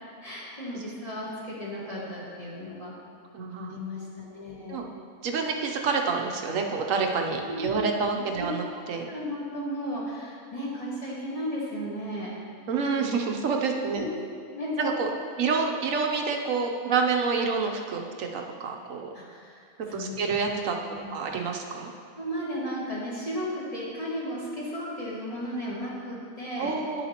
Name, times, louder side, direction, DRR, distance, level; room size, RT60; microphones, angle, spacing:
voice 1, 0.2-2.9 3.6-4.8 7.3-7.8 9.1-12.3 13.9-14.1 14.5-14.9 19.1-20.2 20.9-21.4 22.1-26.7, equal, 25° left, -7 dB, 1.7 m, -35 dB
voice 2, 3.3-3.8 4.7-4.8 5.2-9.1 12.7-14.1 14.8-15.1 15.4-19.1 19.9-20.7 21.1-21.9 26.6-27.1, right 5 dB, 65° right, 2 dB, 1.0 m, -28 dB
10.5 x 7.0 x 2.9 m, 2.3 s
omnidirectional pair, 1.5 m